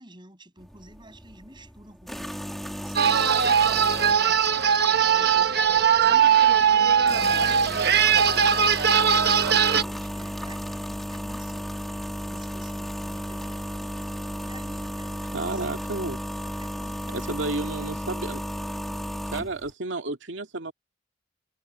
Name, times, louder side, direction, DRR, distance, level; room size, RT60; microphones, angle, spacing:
voice 1, 0.0-4.8 5.1-13.8 14.4-16.0 16.4-18.2, right 1 dB, 25° right, 7.9 m, -50 dB
sound 1, 0.6-19.7, equal, ahead, 2.9 m, -35 dB
sound 2, 3.0-9.8, right 7 dB, 60° right, 1.0 m, -20 dB
voice 2, 15.3-16.2 17.1-18.4 19.3-20.7, right 2 dB, 85° right, 2.2 m, -31 dB
head